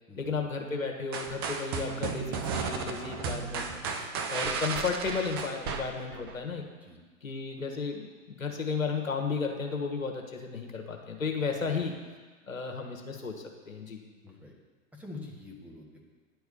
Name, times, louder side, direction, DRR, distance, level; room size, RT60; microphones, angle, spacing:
voice 1, 0.2-3.7 4.3-6.6 7.2-11.9 12.5-14.0, left 5 dB, 75° left, 3 dB, 1.4 m, -33 dB
sound 1, 1.1-6.4, right 5 dB, 20° right, 0.4 m, -34 dB
voice 2, 3.8-4.4 6.5-6.6 6.8-7.0 7.6-7.7 14.2-14.5 14.9-16.0, left 3 dB, 5° right, -2 dB, 1.3 m, -47 dB
10.5 x 4.7 x 6.8 m, 1.4 s
figure-of-eight pair, 100°, 41 cm